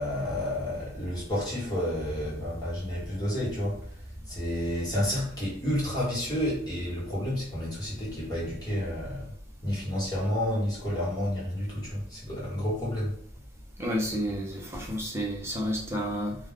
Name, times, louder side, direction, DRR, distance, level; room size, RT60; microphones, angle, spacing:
voice 1, 0.0-3.8 4.3-9.3 9.6-13.1, left 1 dB, 20° left, 1.2 m, -30 dB
voice 2, 13.8-16.4, equal, 15° right, 0.7 m, -30 dB
2.3 x 2.3 x 3.5 m
head